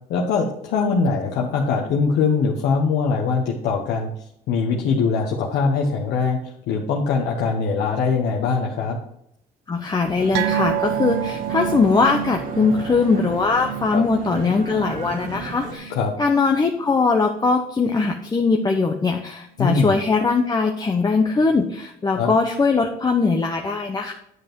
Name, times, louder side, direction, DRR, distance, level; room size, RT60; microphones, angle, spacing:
voice 1, 0.1-9.0 13.9-14.0 15.9-16.1 19.6-20.0 22.1-22.3, left 5 dB, 80° left, -1 dB, 1.2 m, -22 dB
voice 2, 9.7-15.9 16.2-24.1, left 4 dB, 25° left, 2 dB, 0.9 m, -21 dB
sound 1, 10.0-15.8, right 3 dB, 55° right, 2.2 m, -34 dB
sound 2, 10.3-17.2 17.4-17.7 18.0-18.1, right 11 dB, 85° right, 0.6 m, -29 dB
9.7 x 5.4 x 4.6 m, 0.74 s
cardioid pair, 110°, 17 cm